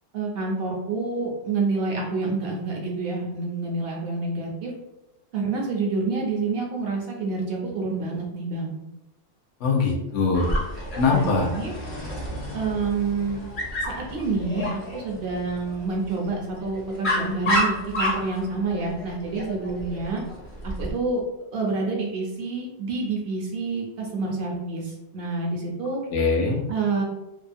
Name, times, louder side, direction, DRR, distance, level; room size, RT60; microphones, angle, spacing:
voice 1, 0.1-4.7 5.3-8.8 11.1-11.7 12.5-13.4 13.8-20.2 20.6-21.2 21.5-26.0 26.7-27.0, right 3 dB, 65° right, -1 dB, 0.7 m, -28 dB
voice 2, 9.6-10.6 11.0-11.5 26.1-26.6, left 4 dB, 75° left, -1 dB, 1.0 m, -22 dB
Dog, 10.3-20.9, left 1 dB, 50° left, 0.9 m, -31 dB
2.9 x 2.0 x 2.5 m, 0.95 s
omnidirectional pair, 1.2 m